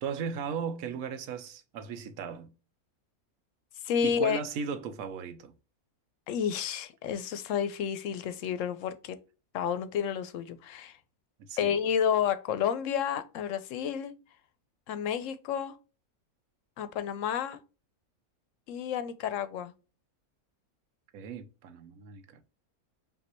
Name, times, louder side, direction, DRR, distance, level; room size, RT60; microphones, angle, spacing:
voice 1, 0.0-2.5 4.0-5.5 11.5-11.7 21.1-22.4, right 6 dB, 75° right, 1.1 m, -36 dB
voice 2, 3.8-4.4 6.3-9.2 9.5-11.0 11.6-14.1 14.9-15.8 16.8-17.6 18.7-19.7, left 8 dB, 65° left, 0.9 m, -30 dB
5.3 x 2.7 x 2.9 m
omnidirectional pair, 1.6 m